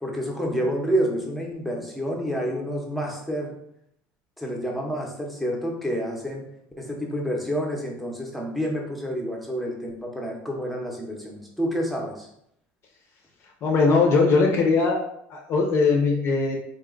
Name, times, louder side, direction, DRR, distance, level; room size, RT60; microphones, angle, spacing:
voice 1, 0.0-3.5 4.4-6.4 6.8-12.3, equal, ahead, -1 dB, 0.7 m, -28 dB
voice 2, 13.6-15.0 15.3-16.5, left 4 dB, 40° left, 1 dB, 0.6 m, -20 dB
3.9 x 2.3 x 3.7 m, 0.73 s
cardioid pair, 150°, 7 cm